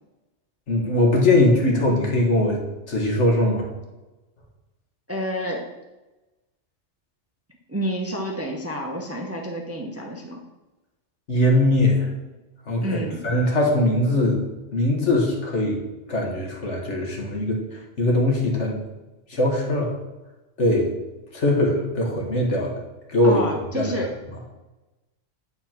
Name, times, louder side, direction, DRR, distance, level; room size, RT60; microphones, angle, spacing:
voice 1, 0.7-2.6 2.9-3.7 11.3-12.1 12.7-13.0 13.2-14.4 14.7-15.8 16.1-18.8 19.3-19.9 20.6-20.9 21.3-22.8 23.1-23.4 23.7-23.9, left 1 dB, 65° left, 0 dB, 1.9 m, -21 dB
voice 2, 5.1-5.7 7.7-10.4 12.8-13.3 23.2-24.1, equal, 15° right, 1 dB, 0.8 m, -29 dB
8.9 x 4.3 x 5.9 m, 1.1 s
omnidirectional pair, 1.3 m